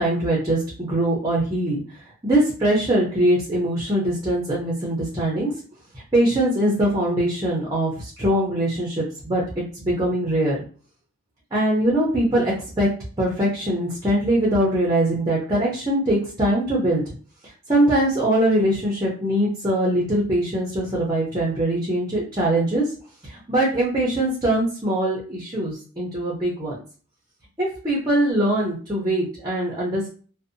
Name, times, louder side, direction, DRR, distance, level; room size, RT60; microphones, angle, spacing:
voice 1, 0.0-1.8 2.2-5.5 6.1-9.4 9.8-10.6 11.5-12.9 13.2-17.0 17.7-22.9 23.3-26.8 27.6-30.1, right 1 dB, 20° right, -4 dB, 0.5 m, -22 dB
2.6 x 2.1 x 2.5 m, 0.40 s
head